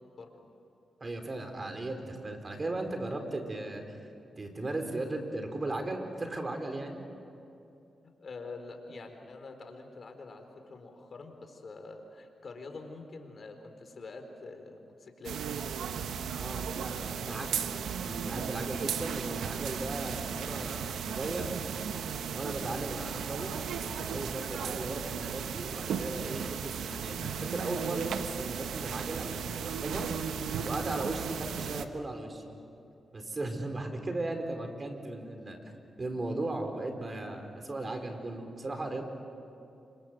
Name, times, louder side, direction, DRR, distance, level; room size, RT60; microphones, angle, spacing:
voice 1, 0.2-0.5 8.2-15.4 16.7-17.5, left 3 dB, 60° left, 5 dB, 4.3 m, -46 dB
voice 2, 1.0-4.0 4.4-7.0 16.4-21.6 22.3-23.5 23.8-30.1 30.6-32.4 33.1-35.6 36.0-39.1, right 2 dB, 40° right, 5 dB, 4.6 m, -37 dB
sound 1, 15.2-31.9, right 7 dB, 85° right, 1.1 m, -35 dB
28.5 x 26.0 x 7.7 m, 2.7 s
cardioid pair, 55°, 0 cm